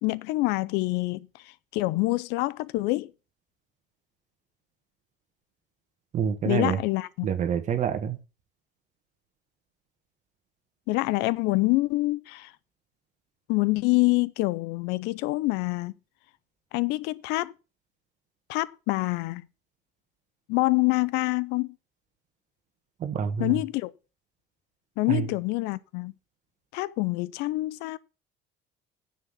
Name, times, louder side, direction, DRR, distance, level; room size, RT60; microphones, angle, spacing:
voice 1, 0.0-3.1 6.4-7.3 10.9-12.5 13.5-15.9 16.7-17.5 18.5-19.4 20.5-21.7 23.4-23.9 25.0-26.1 26.7-28.0, left 21 dB, 80° left, 0.6 m, -26 dB
voice 2, 6.1-6.8 7.2-8.2 23.0-23.6 25.1-25.3, right 8 dB, 45° right, 1.5 m, -27 dB
9.9 x 7.4 x 5.8 m
cardioid pair, 115°, 17 cm